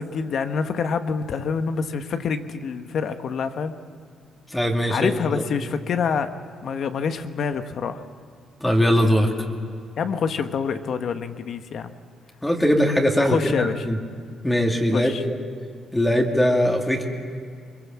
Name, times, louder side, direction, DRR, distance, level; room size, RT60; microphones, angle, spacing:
voice 1, 0.0-3.7 4.9-6.3 6.6-8.0 10.0-11.9 13.2-13.8 14.9-15.2, left 6 dB, 60° left, 8 dB, 1.1 m, -26 dB
voice 2, 4.5-5.4 8.6-9.3 12.4-14.0 14.4-15.3 15.9-17.0, equal, 10° left, 1 dB, 2.3 m, -21 dB
22.5 x 22.0 x 7.4 m, 2.2 s
cardioid pair, 90°, 0 cm